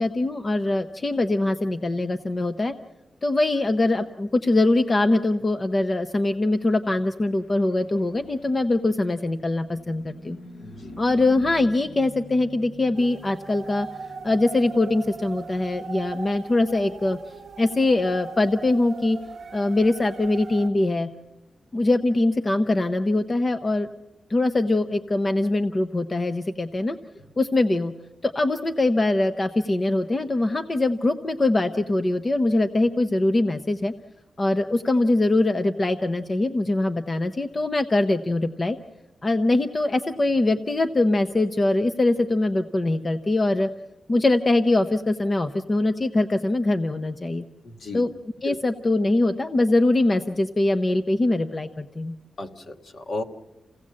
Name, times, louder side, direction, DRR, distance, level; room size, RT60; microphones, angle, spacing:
voice 1, 0.0-2.7 3.2-10.4 11.0-13.9 14.2-17.2 17.6-19.2 19.5-21.1 21.7-23.9 24.3-27.0 27.4-27.9 28.2-33.9 34.4-38.8 39.2-43.7 44.1-47.4 47.9-48.1 48.4-52.1, left 2 dB, 25° left, 8 dB, 0.7 m, -22 dB
Car passing by / Truck, 6.8-20.4, left 2 dB, 80° left, 6.8 m, -47 dB
voice 2, 10.6-11.0 27.1-27.2 47.6-48.0 48.4-48.6 52.4-53.2, left 2 dB, 50° left, 6 dB, 1.4 m, -34 dB
sound 1, 12.9-20.7, right 5 dB, 60° right, 0.8 m, -39 dB
28.0 x 17.0 x 7.5 m, 1.1 s
wide cardioid pair, 155°, 0 cm